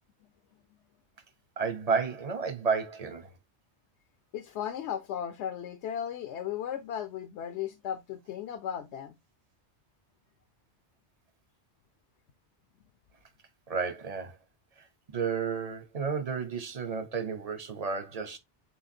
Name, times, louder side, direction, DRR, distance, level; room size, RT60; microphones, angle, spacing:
voice 1, 1.6-3.3 13.7-14.4 14.8-14.9 15.1-18.4, right 5 dB, 40° right, 0.7 m, -32 dB
voice 2, 4.3-9.2, left 9 dB, 75° left, 0.9 m, -36 dB
5.7 x 3.2 x 2.6 m
omnidirectional pair, 1.2 m